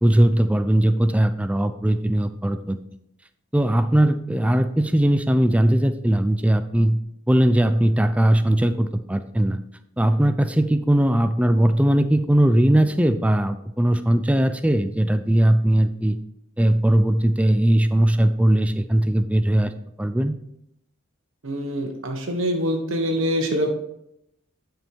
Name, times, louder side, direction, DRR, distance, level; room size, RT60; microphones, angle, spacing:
voice 1, 0.0-2.8 3.5-7.0 7.3-9.6 10.0-16.2 16.6-19.7 20.0-20.4, right 1 dB, 5° right, 9 dB, 0.5 m, -19 dB
voice 2, 21.4-23.7, equal, 75° right, 3 dB, 1.2 m, -24 dB
10.0 x 5.4 x 4.6 m, 0.79 s
head